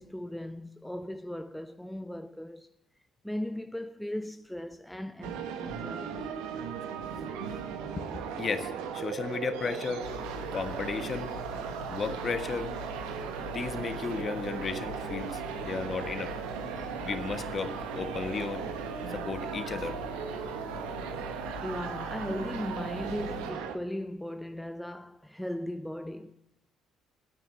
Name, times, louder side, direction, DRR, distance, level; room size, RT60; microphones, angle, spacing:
voice 1, 0.0-2.7 3.2-6.4 21.6-26.4, left 1 dB, 5° left, 0.7 m, -37 dB
sound 1, 5.2-23.8, right 7 dB, 70° right, 1.2 m, -37 dB
voice 2, 8.0-10.1 10.5-11.4 11.9-12.7 13.5-16.3 17.0-18.6 19.1-20.0, left 5 dB, 40° left, 1.4 m, -34 dB
sound 2, 10.0-23.5, left 6 dB, 80° left, 1.0 m, -44 dB
12.0 x 9.2 x 9.3 m
figure-of-eight pair, 50°, 0 cm